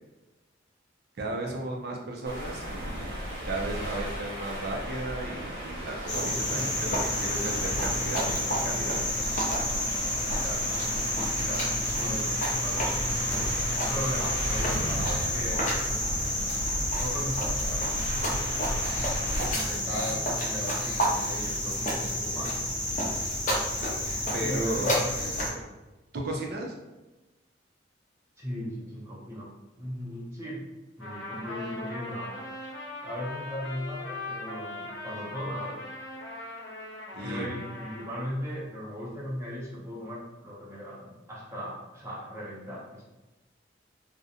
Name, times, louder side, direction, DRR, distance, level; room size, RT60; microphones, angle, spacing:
voice 1, 1.2-3.2 3.4-9.0 24.3-24.9 26.1-26.7 37.1-37.5, right 1 dB, 55° right, 0 dB, 0.4 m, -34 dB
sound 1, 2.2-19.5, equal, 85° right, 1.1 m, -35 dB
Cricket, 6.1-25.5, left 1 dB, 40° left, 0.5 m, -29 dB
voice 2, 6.3-6.9 10.4-10.7 11.4-13.0 13.9-16.5 17.0-19.0 19.5-22.6 24.4-25.6 28.4-29.5 29.8-30.7 31.0-32.4 33.0-35.8 37.2-43.0, equal, 15° right, -6 dB, 0.6 m, -38 dB
Trumpet, 31.0-38.2, left 2 dB, 90° left, 0.9 m, -40 dB
2.4 x 2.1 x 2.7 m, 1.1 s
head